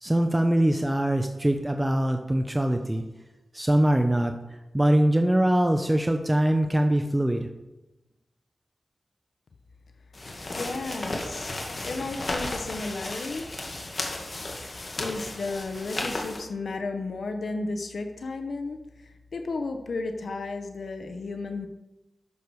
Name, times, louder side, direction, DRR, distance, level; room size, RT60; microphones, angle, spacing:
voice 1, 0.0-3.0 3.5-4.4 4.7-7.5, right 1 dB, 15° right, 5 dB, 0.8 m, -23 dB
sound 1, 10.1-16.4, left 2 dB, 45° left, 2.2 m, -34 dB
voice 2, 10.4-11.6 11.8-13.5 15.0-21.7, left 3 dB, 75° left, 6 dB, 0.9 m, -33 dB
12.5 x 6.8 x 4.8 m, 0.99 s
cardioid pair, 65°, 0 cm